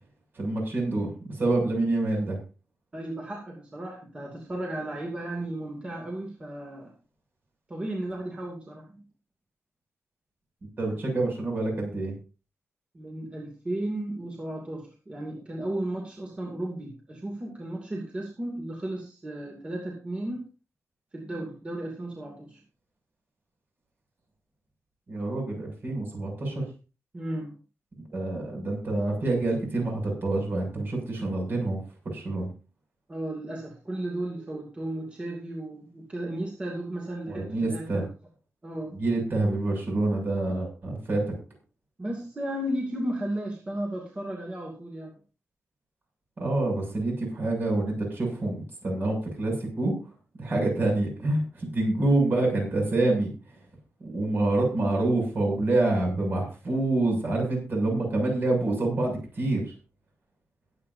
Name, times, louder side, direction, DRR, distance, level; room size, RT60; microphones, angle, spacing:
voice 1, 0.3-2.4 10.8-12.1 25.1-26.6 28.1-31.8 32.0-32.5 37.3-38.0 38.9-41.2 46.4-49.9 50.4-53.6 54.0-59.7, right 2 dB, 40° right, 0 dB, 6.9 m, -27 dB
voice 2, 2.9-6.9 7.7-9.0 12.9-20.5 21.1-22.6 27.1-27.5 33.1-38.1 38.6-38.9 42.0-45.2, right 1 dB, 20° right, 0 dB, 2.6 m, -34 dB
22.0 x 8.6 x 2.7 m, 0.34 s
wide cardioid pair, 175°, 5 cm